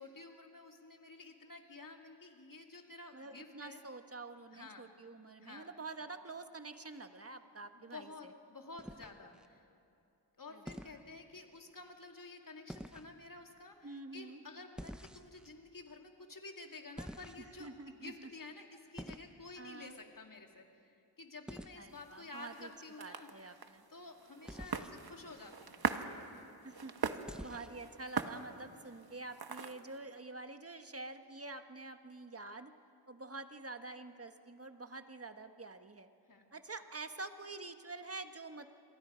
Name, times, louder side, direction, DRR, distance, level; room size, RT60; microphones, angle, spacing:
voice 1, 0.0-3.8 4.5-4.9 5.4-5.7 7.7-9.6 10.4-23.5 23.9-25.9 36.3-36.5, left 3 dB, 45° left, 3 dB, 2.5 m, -51 dB
voice 2, 3.1-8.3 10.5-10.8 13.8-14.4 17.4-18.3 19.6-20.0 21.8-22.7 23.0-23.8 26.6-26.9 27.4-32.7 33.1-36.1 36.5-38.7, right 3 dB, 30° right, 8 dB, 1.4 m, -47 dB
sound 1, 8.8-9.5 10.7-11.0 12.7-13.1 14.8-15.5 17.0-17.7 19.0-19.3 21.5-21.8 24.5-25.0 27.3-27.8, equal, ahead, 0.9 m, -48 dB
sound 2, 21.9-30.0, right 5 dB, 55° right, 1.2 m, -42 dB
28.5 x 22.5 x 5.1 m, 2.7 s
cardioid pair, 50°, 44 cm